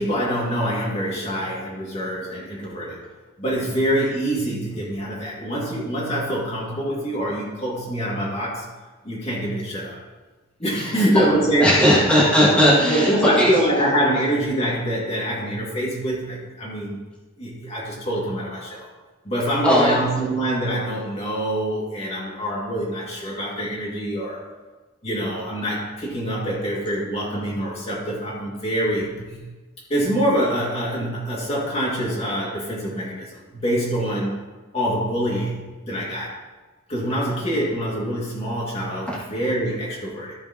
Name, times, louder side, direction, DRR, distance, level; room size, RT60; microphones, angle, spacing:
voice 1, 0.0-3.0 3.4-8.7 9.0-10.0 10.6-11.7 12.9-17.0 17.4-18.9 19.3-24.4 25.0-29.4 29.9-34.4 34.7-36.3 36.9-40.3, equal, 30° left, -5 dB, 2.4 m, -25 dB
voice 2, 10.8-11.3 11.6-13.5 19.6-20.0, equal, 5° left, -8 dB, 2.2 m, -18 dB
14.0 x 7.1 x 3.0 m, 1.2 s
head